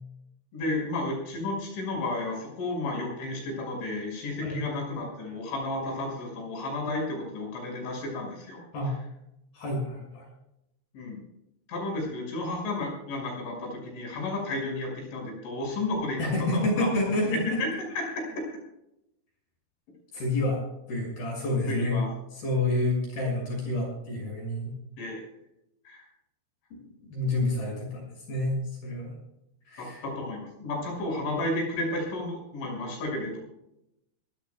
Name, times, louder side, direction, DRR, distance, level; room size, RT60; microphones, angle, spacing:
voice 1, 0.5-8.9 10.9-11.2 11.7-17.0 17.3-18.4 21.7-22.1 25.0-25.3 25.9-26.1 29.8-33.4, left 2 dB, 90° left, 0 dB, 8.1 m, -32 dB
voice 2, 9.5-10.2 16.2-17.4 20.1-20.6 20.9-22.0 22.3-24.7 27.1-29.1 29.7-30.0, left 2 dB, 55° left, 0 dB, 8.3 m, -28 dB
25.0 x 16.5 x 2.3 m, 0.84 s
omnidirectional pair, 5.3 m